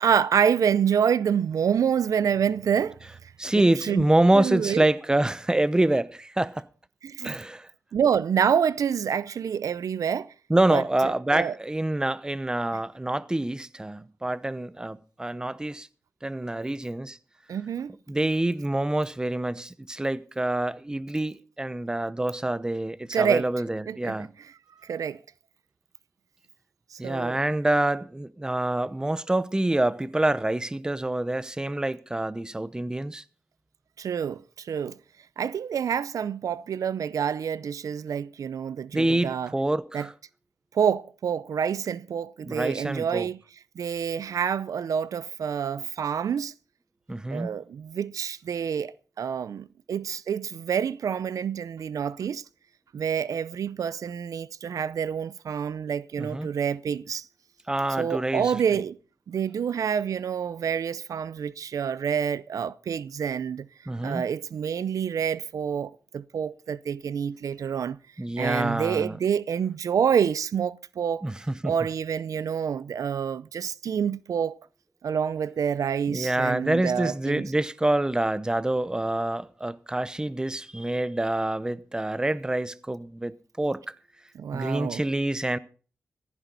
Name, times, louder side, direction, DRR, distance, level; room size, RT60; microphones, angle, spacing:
voice 1, 0.0-3.0 3.5-4.0 4.3-4.8 7.0-7.4 7.9-10.3 10.7-11.5 17.5-18.0 23.1-23.5 23.9-24.2 24.8-25.2 26.9-27.4 34.0-35.0 35.4-39.5 39.9-40.1 40.7-43.4 43.8-46.5 47.3-52.4 52.9-57.2 58.0-59.0 59.3-63.7 64.0-68.0 68.4-71.3 71.6-74.6 75.0-77.5 84.4-85.0, right 7 dB, 80° right, 0.6 m, -27 dB
voice 2, 3.4-6.6 7.2-7.7 10.5-15.9 16.2-17.2 18.1-24.3 27.0-33.2 38.9-40.1 42.4-43.3 47.1-47.6 56.2-56.5 57.7-58.8 63.9-64.2 68.2-69.2 71.2-71.7 76.1-83.8 84.5-85.6, right 1 dB, 15° right, 0.8 m, -26 dB
15.5 x 14.5 x 4.0 m
wide cardioid pair, 95°, 6 cm